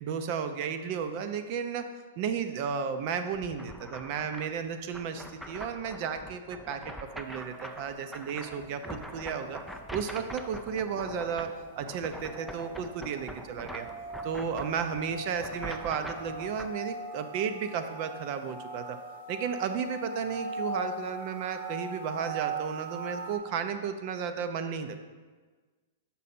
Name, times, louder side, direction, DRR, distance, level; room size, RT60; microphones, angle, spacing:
voice 1, 0.0-1.8 2.2-9.6 9.9-11.5 11.8-13.9 14.2-19.0 19.3-25.1, right 7 dB, 45° right, 8 dB, 0.6 m, -33 dB
sound 1, 3.3-16.7, equal, ahead, 0.4 m, -44 dB
sound 2, 7.2-23.4, right 3 dB, 70° right, 1.4 m, -41 dB
6.1 x 5.5 x 4.3 m, 1.4 s
hypercardioid pair, 135°, 0 cm